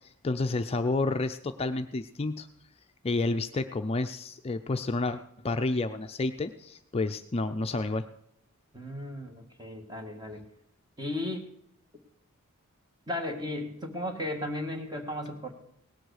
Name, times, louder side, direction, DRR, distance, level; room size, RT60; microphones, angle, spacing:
voice 1, 0.2-2.5 3.0-8.0, left 3 dB, 30° left, 7 dB, 0.5 m, -30 dB
voice 2, 8.7-10.4 11.0-11.5 13.1-15.5, left 1 dB, 20° right, 4 dB, 1.8 m, -35 dB
18.0 x 7.9 x 6.4 m, 0.74 s
head